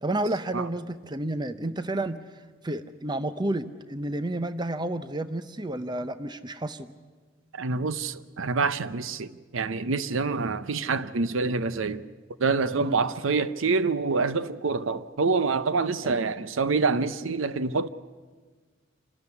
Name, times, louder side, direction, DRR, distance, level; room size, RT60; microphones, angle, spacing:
voice 1, 0.0-2.2 2.6-6.9 12.8-13.0 16.0-16.2, right 1 dB, 20° right, 0.7 m, -31 dB
voice 2, 7.5-12.0 12.4-17.9, right 4 dB, 80° right, 0.7 m, -26 dB
27.0 x 12.5 x 9.6 m
head